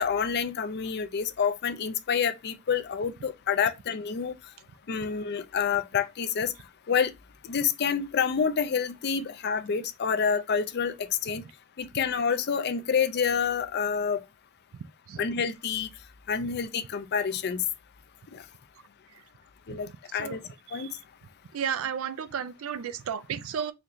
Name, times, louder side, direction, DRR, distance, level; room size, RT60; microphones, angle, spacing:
voice 1, 0.0-4.4 4.9-6.5 6.9-7.1 7.4-11.4 11.8-14.2 15.2-15.9 16.3-17.6 18.3-18.4 19.7-20.4 20.7-20.9, left 6 dB, 50° left, 0.4 m, -28 dB
voice 2, 21.5-23.7, right 7 dB, 75° right, 0.4 m, -33 dB
4.2 x 2.6 x 3.0 m
head